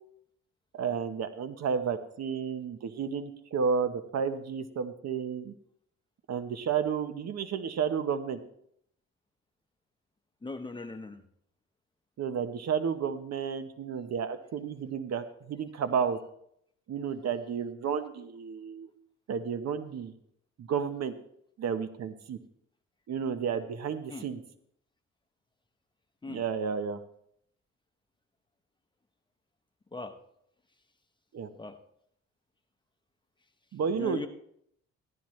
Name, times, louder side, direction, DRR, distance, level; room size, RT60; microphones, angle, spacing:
voice 1, 0.7-5.5 6.3-8.4 12.2-16.2 16.9-18.9 19.3-20.1 20.6-21.1 21.6-22.4 23.1-24.4 26.3-27.0 31.3-31.5 33.7-34.3, right 6 dB, 60° right, 10 dB, 1.0 m, -32 dB
voice 2, 10.4-11.2 24.1-24.2 26.2-26.4 29.9-30.1 31.6-31.8 33.9-34.3, left 3 dB, 15° left, 7 dB, 1.1 m, -39 dB
14.5 x 12.0 x 3.2 m, 0.71 s
cardioid pair, 90°, 30 cm